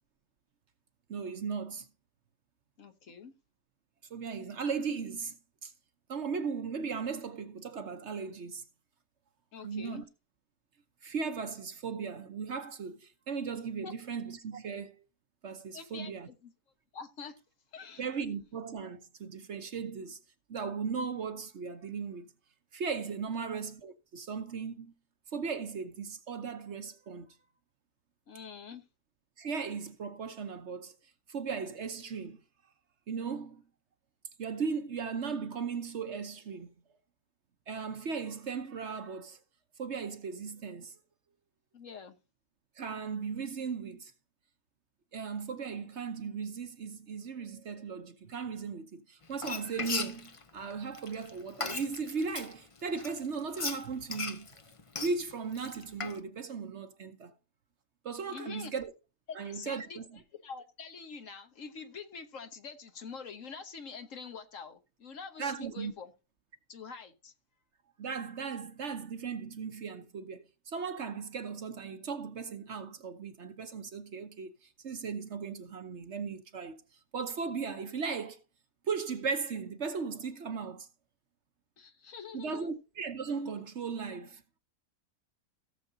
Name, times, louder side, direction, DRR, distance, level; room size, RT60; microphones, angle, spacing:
voice 1, 1.1-1.9 4.1-5.7 6.1-8.6 9.6-10.0 11.0-15.0 15.4-16.3 18.0-20.2 20.5-22.3 22.7-24.9 25.3-27.3 29.4-30.9 31.3-32.4 33.1-33.6 34.4-36.7 37.7-39.4 39.8-41.0 42.8-44.1 45.1-54.5 55.0-57.3 58.0-58.9 59.3-60.0 65.4-65.9 68.0-76.8 77.1-78.4 78.8-80.9 82.3-84.4, right 5 dB, 55° right, 1.1 m, -37 dB
voice 2, 2.8-3.3 9.5-10.0 13.8-13.9 15.7-16.1 16.4-16.5 16.9-17.4 17.7-18.0 28.3-28.8 41.7-42.2 58.3-58.7 59.3-60.0 60.4-66.1 66.7-67.3 81.8-82.7, left 5 dB, 60° left, 1.4 m, -45 dB
Frying (food), 49.3-52.5 53.0-56.2, left 4 dB, 30° left, 0.6 m, -37 dB
17.5 x 6.9 x 2.7 m
omnidirectional pair, 1.6 m